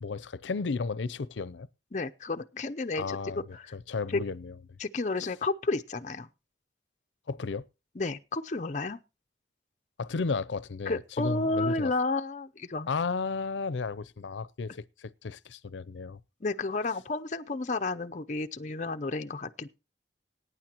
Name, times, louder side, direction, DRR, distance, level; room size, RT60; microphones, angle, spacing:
voice 1, 0.0-1.7 3.0-4.6 7.3-7.7 10.0-11.9 12.9-16.2, left 4 dB, 85° left, 0.5 m, -33 dB
voice 2, 1.9-3.2 3.5-3.7 4.8-6.3 8.0-9.0 10.9-12.9 16.4-19.7, left 3 dB, 40° left, 0.6 m, -31 dB
20.5 x 9.4 x 2.9 m
head